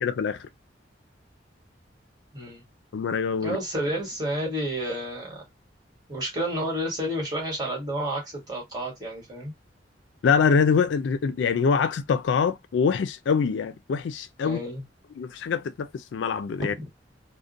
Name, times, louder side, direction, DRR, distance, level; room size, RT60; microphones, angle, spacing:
voice 1, 0.0-0.4 2.9-3.6 10.2-14.6 15.2-16.7, left 6 dB, 75° left, 0.3 m, -24 dB
voice 2, 2.3-2.6 3.4-5.4 6.1-9.5 14.4-14.8 16.6-16.8, equal, 25° right, 1.4 m, -30 dB
2.4 x 2.1 x 2.5 m
head